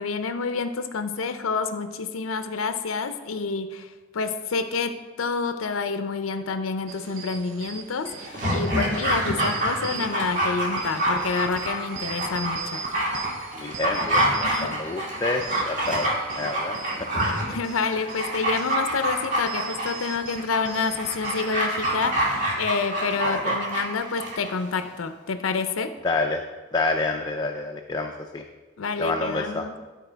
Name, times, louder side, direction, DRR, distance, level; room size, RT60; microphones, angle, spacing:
voice 1, 0.0-12.8 14.4-14.8 17.5-25.9 28.8-29.7, left 4 dB, 85° left, 9 dB, 0.5 m, -28 dB
sound 1, 6.9-22.0, right 5 dB, 75° right, 0.7 m, -40 dB
Dog, 8.2-24.5 24.8-24.9, right 1 dB, 40° right, 2.0 m, -27 dB
voice 2, 13.5-17.1 23.2-23.6 26.0-26.5 26.7-28.4 29.0-29.7, left 3 dB, 20° left, 2 dB, 0.4 m, -28 dB
12.0 x 4.1 x 4.5 m, 1.3 s
head